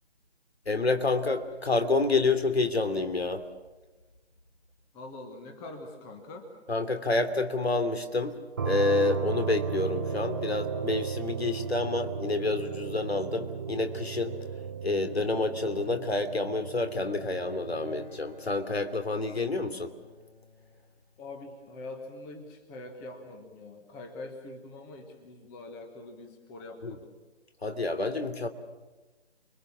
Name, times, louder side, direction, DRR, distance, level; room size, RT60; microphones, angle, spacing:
voice 1, 0.6-3.5 6.7-8.4 8.6-14.4 14.8-20.0 26.8-27.0 27.6-28.5, left 3 dB, 70° left, 8 dB, 3.0 m, -28 dB
voice 2, 4.9-6.5 21.2-27.1, left 2 dB, 10° left, 4 dB, 1.2 m, -44 dB
sound 1, 8.6-18.1, right 6 dB, 20° right, 0.8 m, -35 dB
Bowed string instrument, 17.2-21.4, left 4 dB, 40° left, 6.5 m, -56 dB
30.0 x 22.0 x 7.3 m, 1.2 s
figure-of-eight pair, 150°, 33 cm